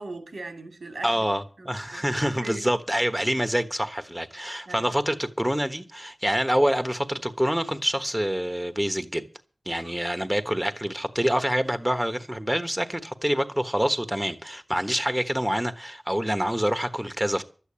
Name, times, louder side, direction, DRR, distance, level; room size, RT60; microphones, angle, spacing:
voice 1, 0.0-1.3 1.6-2.0 2.3-2.7 4.6-4.9 9.7-10.0, right 2 dB, 85° right, 2.7 m, -40 dB
voice 2, 1.0-9.3 9.7-17.4, equal, 10° right, 1.2 m, -26 dB
12.5 x 8.6 x 8.6 m
wide cardioid pair, 80°, 0 cm